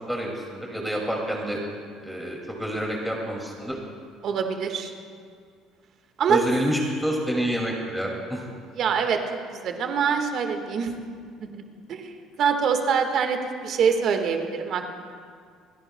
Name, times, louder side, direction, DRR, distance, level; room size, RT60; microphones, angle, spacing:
voice 1, 0.1-1.6 2.0-3.8 6.3-8.4, equal, ahead, -2 dB, 2.3 m, -28 dB
voice 2, 4.2-4.9 6.2-6.4 8.7-9.2 9.5-11.0 11.4-11.6 11.9-12.1 12.4-13.4 13.6-14.9, right 6 dB, 60° right, 5 dB, 1.5 m, -24 dB
28.0 x 10.5 x 2.2 m, 2.1 s
supercardioid pair, 80°, 0 cm